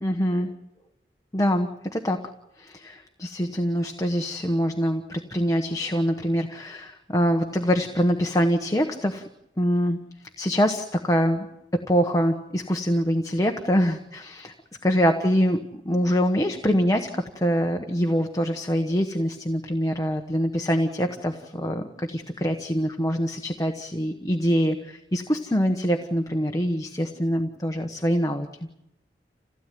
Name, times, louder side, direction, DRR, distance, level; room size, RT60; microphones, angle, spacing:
voice 1, 0.0-0.5 1.3-2.2 2.6-9.2 9.6-11.5 11.7-14.5 14.8-15.6 15.8-28.5, equal, 20° left, 4 dB, 1.2 m, -24 dB
28.0 x 16.5 x 9.4 m, 0.90 s
head